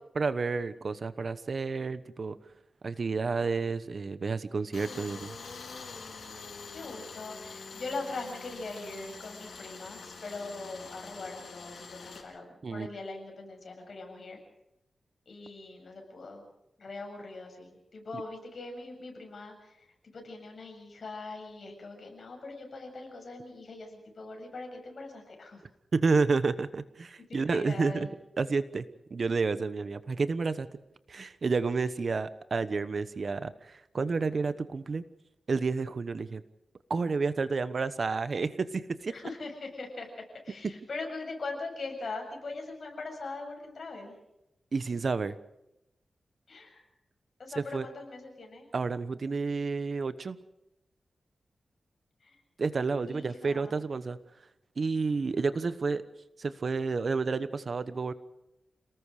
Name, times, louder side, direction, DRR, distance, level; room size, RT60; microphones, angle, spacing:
voice 1, 0.2-2.4 2.8-5.3 12.6-12.9 25.9-28.1 28.4-30.7 31.1-35.0 35.5-36.4 36.9-39.1 44.7-45.4 47.6-47.9 48.7-50.4 52.6-54.2 54.8-56.0 56.4-58.1, right 4 dB, 55° right, 14 dB, 1.1 m, -30 dB
Tools, 4.7-12.2, left 4 dB, 80° left, 4.7 m, -45 dB
voice 2, 6.7-14.4 15.3-16.4 16.8-25.6 27.3-28.1 39.1-40.1 40.4-44.2 46.5-46.9 47.4-48.7 52.2-52.4 53.1-53.7, left 3 dB, 60° left, 2 dB, 7.5 m, -41 dB
29.0 x 19.5 x 5.0 m, 0.88 s
wide cardioid pair, 105°, 0 cm